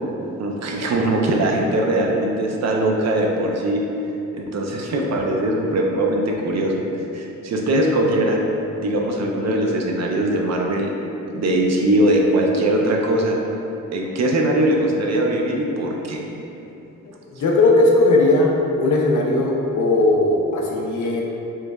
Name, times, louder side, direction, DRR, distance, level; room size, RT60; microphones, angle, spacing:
voice 1, 0.4-3.8 4.3-6.8 7.1-8.4 8.8-10.9 11.3-13.4 13.9-16.2, right 1 dB, 50° right, 0 dB, 0.5 m, -21 dB
voice 2, 17.4-18.5 18.8-21.2, left 2 dB, 65° left, -1 dB, 0.6 m, -17 dB
4.5 x 2.1 x 2.3 m, 2.9 s
cardioid pair, 60°, 34 cm